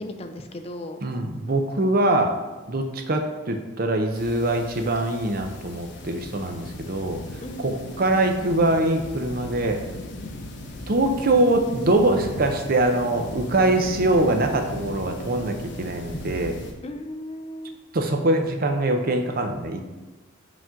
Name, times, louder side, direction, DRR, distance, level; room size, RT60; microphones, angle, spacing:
voice 1, 0.0-1.0 7.4-7.8 16.8-17.8, left 1 dB, 30° left, 6 dB, 0.4 m, -36 dB
voice 2, 1.0-2.4 2.7-7.2 7.6-9.8 10.9-16.6 17.9-19.8, right 2 dB, 45° right, 5 dB, 0.6 m, -23 dB
sound 1, 4.1-16.7, left 1 dB, 55° left, 0.8 m, -37 dB
5.0 x 3.8 x 5.7 m, 1.2 s
head